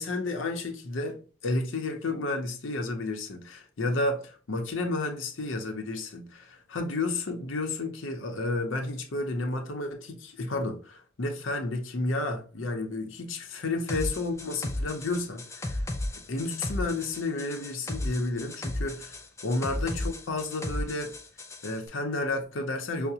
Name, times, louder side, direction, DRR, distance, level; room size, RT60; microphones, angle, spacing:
voice 1, 0.0-15.8 16.3-21.1 21.6-23.1, left 2 dB, 90° left, 0.7 m, -31 dB
sound 1, 13.9-21.8, left 1 dB, 15° left, 0.4 m, -34 dB
5.7 x 2.1 x 2.7 m
head